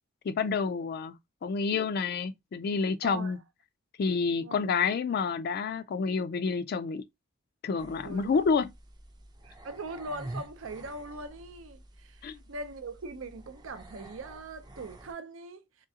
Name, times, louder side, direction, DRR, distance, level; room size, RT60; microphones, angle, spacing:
voice 1, 0.2-1.1 1.4-3.4 4.0-7.0 7.6-8.7 12.2-12.4, left 5 dB, 50° left, 0.3 m, -29 dB
voice 2, 3.0-3.3 4.4-4.6 8.0-8.3 9.4-15.9, right 2 dB, 75° right, 0.6 m, -41 dB
sound 1, 7.8-15.1, right 1 dB, 20° right, 0.5 m, -48 dB
3.7 x 3.2 x 2.7 m
head